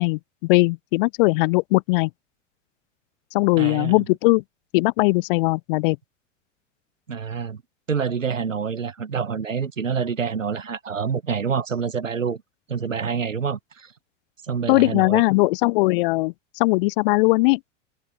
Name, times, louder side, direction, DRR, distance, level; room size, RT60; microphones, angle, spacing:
voice 1, 0.0-2.1 3.3-4.4 4.7-6.0 14.7-17.6, left 24 dB, 45° left, 0.7 m, -20 dB
voice 2, 3.6-4.0 7.1-7.6 7.9-12.4 12.7-13.9 14.5-15.2, right 6 dB, 80° right, 1.3 m, -27 dB
figure-of-eight pair, 90°, 38 cm